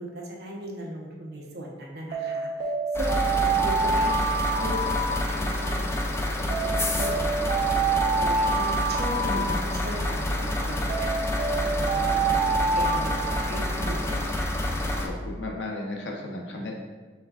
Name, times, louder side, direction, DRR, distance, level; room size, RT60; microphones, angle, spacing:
voice 1, 0.0-4.2 4.6-6.1 6.3-7.9 8.2-11.2 11.6-12.4 12.8-14.6, right 1 dB, 65° right, -2 dB, 0.8 m, -38 dB
Alarm, 2.1-5.8 6.5-10.2 10.9-14.1, right 4 dB, 45° right, 0.4 m, -27 dB
sound 1, 2.9-15.1, left 1 dB, 15° left, 0.4 m, -28 dB
voice 2, 9.2-9.8 15.0-16.8, left 1 dB, 90° left, 0 dB, 0.8 m, -35 dB
5.6 x 3.5 x 2.4 m, 1.3 s
head